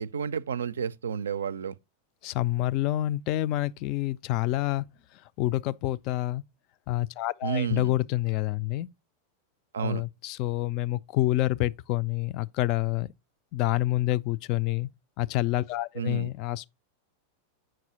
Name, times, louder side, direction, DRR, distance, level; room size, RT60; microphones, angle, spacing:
voice 1, 0.0-1.7 7.4-7.9 9.7-10.0 15.9-16.3, right 7 dB, 65° right, 0.4 m, -31 dB
voice 2, 2.2-4.8 5.4-6.4 6.9-8.9 9.8-13.1 13.5-14.9 15.2-16.7, left 16 dB, 40° left, 0.3 m, -27 dB
7.6 x 5.9 x 2.8 m
figure-of-eight pair, 90°, 0 cm